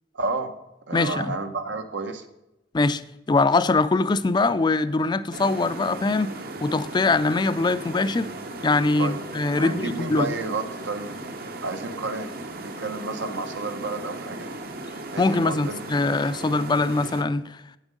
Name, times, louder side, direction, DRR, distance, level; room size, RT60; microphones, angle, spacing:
voice 1, 0.1-0.5 0.9-2.2 9.0-9.2 9.6-11.1 11.6-12.3 12.6-14.5 15.1-15.8, right 3 dB, 80° right, 1.0 m, -31 dB
voice 2, 0.9-1.3 2.7-3.0 3.3-6.3 6.6-8.3 8.6-10.3 15.2-17.6, left 3 dB, 25° left, 0.3 m, -22 dB
sound 1, 5.3-17.2, right 2 dB, 55° right, 0.9 m, -37 dB
8.3 x 7.0 x 5.2 m
head